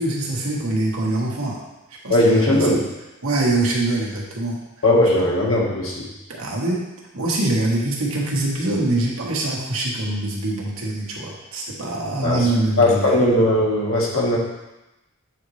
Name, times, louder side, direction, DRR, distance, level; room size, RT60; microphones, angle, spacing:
voice 1, 0.0-1.6 2.0-2.7 3.2-4.6 6.4-6.9 7.1-13.1, right 2 dB, 80° right, -3 dB, 1.4 m, -24 dB
voice 2, 2.1-2.8 4.8-6.1 12.2-12.5 12.8-14.4, left 1 dB, 70° left, -3 dB, 1.5 m, -18 dB
8.2 x 4.0 x 3.2 m, 0.99 s
head